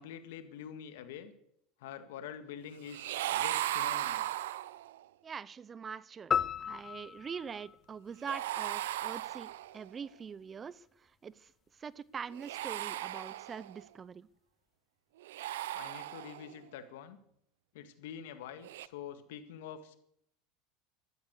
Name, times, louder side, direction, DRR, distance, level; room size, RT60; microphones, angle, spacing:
voice 1, 0.0-1.3 1.8-4.3 15.7-17.2 17.7-20.0, left 8 dB, 75° left, 1.8 m, -46 dB
sound 1, 2.9-5.0 8.2-9.9 12.3-13.8 15.2-16.6 18.6-18.9, right 14 dB, 80° right, 0.5 m, -37 dB
voice 2, 5.2-14.3, right 6 dB, 30° right, 0.6 m, -44 dB
sound 2, 6.3-8.8, left 7 dB, 30° left, 0.6 m, -35 dB
13.0 x 13.0 x 6.6 m
hypercardioid pair, 95°, 0 cm